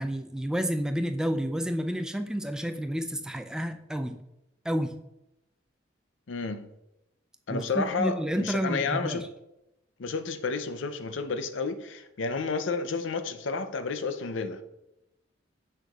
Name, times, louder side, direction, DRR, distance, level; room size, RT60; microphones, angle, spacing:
voice 1, 0.0-4.2 4.6-5.0 7.5-9.3, equal, 5° right, 0.3 m, -30 dB
voice 2, 6.3-6.7 7.5-9.2 10.0-14.6, left 4 dB, 75° left, 0.5 m, -31 dB
6.6 x 6.3 x 2.4 m
head